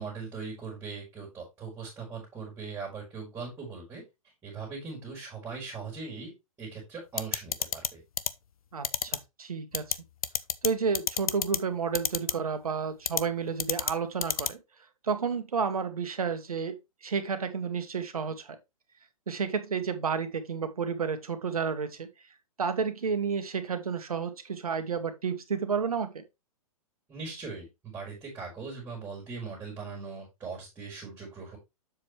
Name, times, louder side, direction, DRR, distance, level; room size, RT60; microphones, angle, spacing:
voice 1, 0.0-4.0 4.4-6.3 6.6-8.0 27.1-31.6, right 4 dB, 15° right, 4.3 m, -40 dB
sound 1, 7.2-7.9 8.2-8.3 8.8-9.2 9.7-9.9 10.2-10.7 10.9-11.6 11.9-12.3 13.1-13.2 13.6-13.9 14.2-14.5, left 8 dB, 80° left, 0.7 m, -27 dB
voice 2, 8.7-10.0 10.6-14.6 15.0-18.6 19.3-22.1 22.6-26.2, right 6 dB, 80° right, 1.6 m, -31 dB
7.5 x 6.4 x 3.2 m
hypercardioid pair, 120°, 18 cm